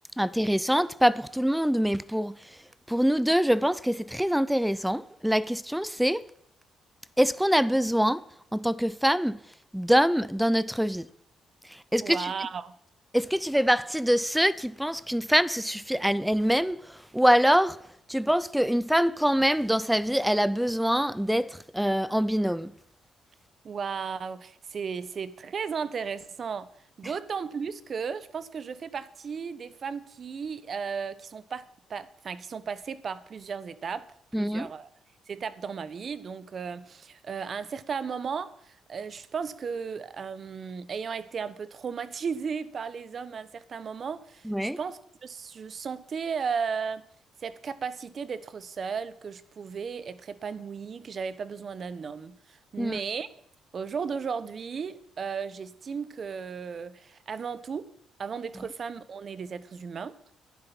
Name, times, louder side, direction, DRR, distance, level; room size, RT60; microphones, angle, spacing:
voice 1, 0.2-2.6 2.9-6.2 7.2-8.2 8.5-9.4 9.7-11.1 11.6-12.3 13.1-22.7 34.3-34.7 44.5-44.8 52.8-53.0, equal, 5° right, 0.5 m, -25 dB
voice 2, 12.0-12.8 23.6-34.9 35.3-47.1 47.4-53.3 53.7-57.9 58.2-60.2, right 6 dB, 50° right, 0.8 m, -35 dB
10.5 x 10.5 x 5.9 m
cardioid pair, 90°, 0 cm